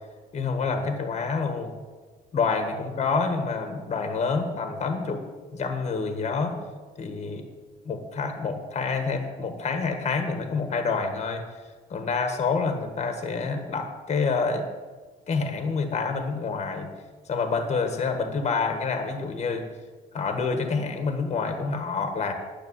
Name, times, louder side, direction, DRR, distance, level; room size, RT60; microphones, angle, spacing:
voice 1, 0.3-1.7 2.3-5.2 5.5-6.6 7.0-7.4 7.8-11.4 11.9-14.6 15.3-16.9 17.3-19.7 20.1-22.3, left 4 dB, 40° left, 5 dB, 1.5 m, -27 dB
10.0 x 6.5 x 8.1 m, 1.4 s
cardioid pair, 110°, 17 cm